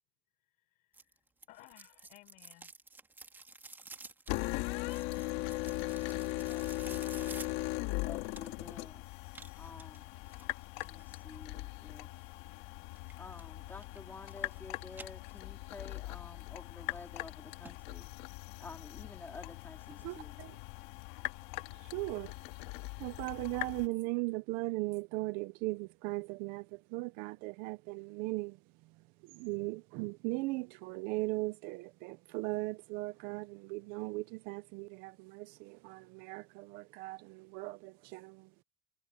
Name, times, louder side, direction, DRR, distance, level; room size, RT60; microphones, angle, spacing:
voice 1, 0.4-2.7, left 18 dB, 55° left, 6.6 m, -60 dB
sound 1, 0.9-8.7 9.3-11.0 13.0-13.5 13.8-14.6 14.9-15.8 16.2-16.3 16.9-17.0 17.3-17.4 17.6-17.7 18.1-18.2, right 3 dB, 10° right, 2.3 m, -52 dB
sound 2, 4.3-23.9, left 22 dB, 85° left, 2.1 m, -40 dB
voice 2, 6.0-7.4 7.9-9.1 9.5-10.1 10.8-12.3 13.2-18.2 18.6-20.4, left 3 dB, 10° left, 4.1 m, -51 dB
voice 3, 20.0-20.5 21.7-22.3 23.0-28.6 29.2-38.5, right 23 dB, 70° right, 0.6 m, -38 dB
cardioid pair, 160°, 16 cm